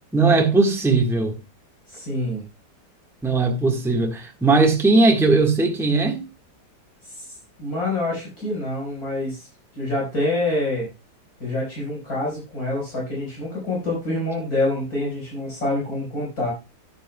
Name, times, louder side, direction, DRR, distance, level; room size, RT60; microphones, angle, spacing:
voice 1, 0.1-1.4 3.2-6.2, right 3 dB, ahead, 1.3 m, -18 dB
voice 2, 1.9-2.4 7.1-7.3 7.6-9.5 9.7-10.9 11.4-16.5, left 2 dB, 55° left, 5.2 m, -26 dB
12.0 x 10.5 x 2.3 m
omnidirectional pair, 1.9 m